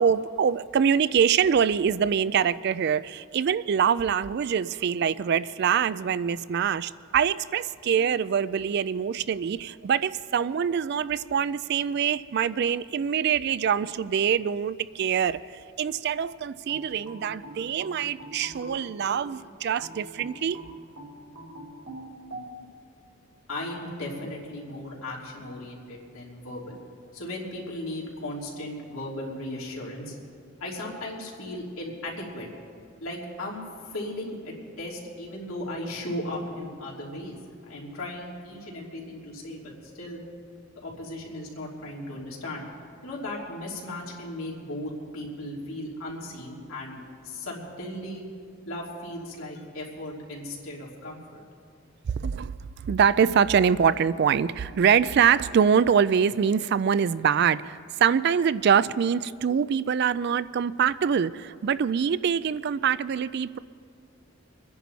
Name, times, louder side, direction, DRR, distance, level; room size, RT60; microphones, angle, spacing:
voice 1, 0.0-15.4 15.8-20.6 52.1-63.6, right 7 dB, 50° right, 17 dB, 0.3 m, -24 dB
sound 1, 16.7-19.3 19.8-22.5, right 1 dB, 90° right, 3.2 m, -43 dB
voice 2, 23.5-26.8 27.1-30.1 30.6-32.5 33.0-37.3 37.7-40.2 40.8-42.7 43.0-48.2 48.7-51.4, left 1 dB, 85° left, -4 dB, 3.1 m, -36 dB
25.5 x 10.5 x 4.1 m, 2.2 s
head